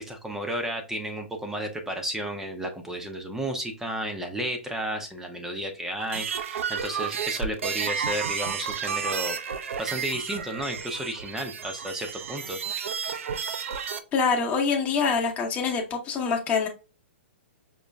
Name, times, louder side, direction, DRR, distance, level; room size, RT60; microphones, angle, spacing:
voice 1, 0.0-9.4 9.8-12.9, right 1 dB, 5° right, 0.6 m, -33 dB
sound 1, 6.0-14.0, right 7 dB, 80° right, 0.6 m, -31 dB
voice 2, 14.1-16.7, left 5 dB, 20° left, 1.0 m, -25 dB
5.4 x 2.9 x 2.3 m
hypercardioid pair, 135°, 7 cm